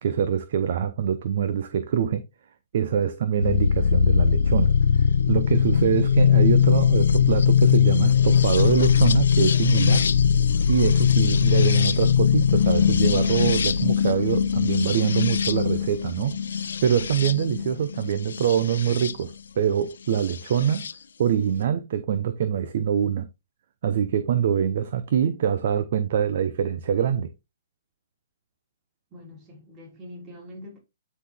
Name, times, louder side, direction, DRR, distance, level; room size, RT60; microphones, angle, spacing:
voice 1, 0.0-2.2 2.7-4.7 5.3-10.1 10.7-16.4 16.8-20.9 21.2-23.3 23.8-27.3, right 8 dB, 55° right, 0.8 m, -24 dB
sound 1, 3.4-19.1 20.3-20.9, left 7 dB, 75° left, 0.7 m, -20 dB
voice 2, 29.1-30.8, left 1 dB, 25° right, 3.3 m, -43 dB
9.8 x 4.1 x 3.6 m
hypercardioid pair, 145°, 0 cm